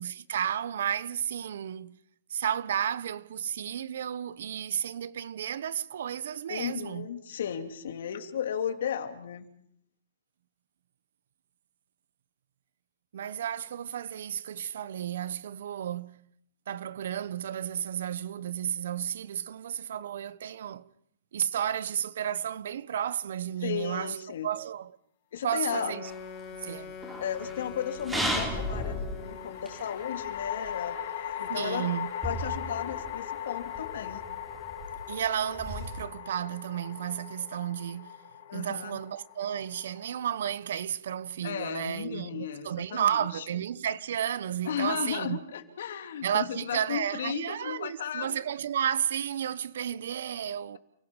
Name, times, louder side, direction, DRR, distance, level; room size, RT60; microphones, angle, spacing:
voice 1, 0.0-2.0 2.3-7.1 13.1-16.2 16.7-20.9 21.3-24.2 24.4-24.9 25.4-26.1 26.6-26.9 31.5-32.1 35.1-38.2 38.5-45.4 46.2-50.8, right 9 dB, 70° right, 1.1 m, -32 dB
voice 2, 6.5-9.5 23.6-24.5 25.3-25.9 27.2-31.0 31.4-31.9 32.2-34.2 38.5-39.0 41.4-43.2 44.6-48.4, left 9 dB, 70° left, 3.0 m, -35 dB
Wind instrument woodwind instrument, 25.6-29.8, left 6 dB, 30° left, 4.9 m, -43 dB
sound 1, 26.1-26.8 29.2-40.5, left 10 dB, 50° left, 3.2 m, -39 dB
sound 2, 26.1-30.8 31.3-31.4 31.6-31.7 32.2-36.0, equal, 5° right, 3.5 m, -36 dB
30.0 x 17.0 x 7.3 m
hypercardioid pair, 165°, 0 cm